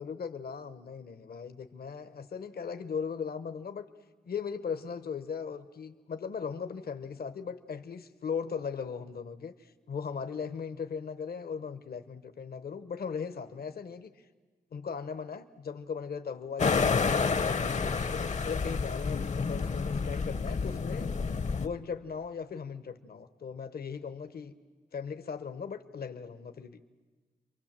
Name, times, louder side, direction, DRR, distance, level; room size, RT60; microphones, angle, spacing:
voice 1, 0.0-3.9 4.3-14.3 14.7-21.1 21.6-24.5 24.9-26.8, left 6 dB, 70° left, 9 dB, 1.0 m, -38 dB
sound 1, 16.6-21.7, left 5 dB, 45° left, 0.7 m, -29 dB
29.5 x 23.5 x 7.4 m, 1.3 s
wide cardioid pair, 115°, 17 cm